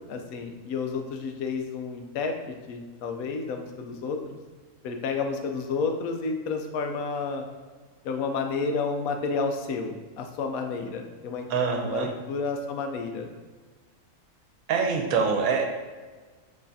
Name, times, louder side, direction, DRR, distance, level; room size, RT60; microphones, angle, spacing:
voice 1, 0.0-4.4 4.8-7.4 8.0-13.3, left 4 dB, 85° left, 5 dB, 1.0 m, -31 dB
voice 2, 11.5-12.1 14.7-15.7, right 5 dB, 80° right, 4 dB, 1.1 m, -24 dB
5.5 x 3.1 x 2.6 m, 1.4 s
omnidirectional pair, 1.5 m